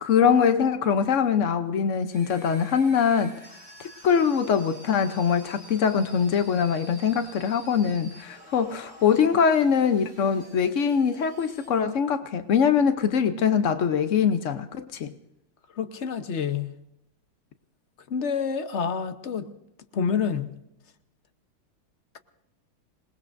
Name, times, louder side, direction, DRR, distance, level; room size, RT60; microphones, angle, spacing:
voice 1, 0.0-3.3 3.8-15.1, left 7 dB, 90° left, 10 dB, 0.6 m, -23 dB
sound 1, 2.1-11.7, equal, 30° left, 4.3 m, -49 dB
voice 2, 15.8-16.7 18.1-19.5 19.9-20.5, left 6 dB, 50° left, 9 dB, 0.8 m, -28 dB
27.0 x 19.5 x 2.6 m, 0.85 s
omnidirectional pair, 2.4 m